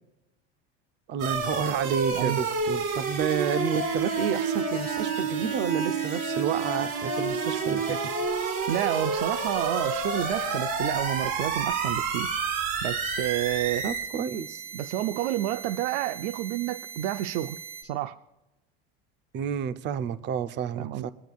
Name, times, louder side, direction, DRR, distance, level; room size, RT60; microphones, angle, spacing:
voice 1, 1.1-8.1 13.8-14.6 19.3-21.1, right 8 dB, 35° right, 12 dB, 0.6 m, -30 dB
sound 1, 1.2-17.8, right 5 dB, 65° right, 2.4 m, -30 dB
voice 2, 8.7-12.3 12.8-13.9 14.7-18.2 20.8-21.1, right 12 dB, 80° right, 10 dB, 0.6 m, -30 dB
22.5 x 10.0 x 2.3 m, 0.96 s
cardioid pair, 145°, 30 cm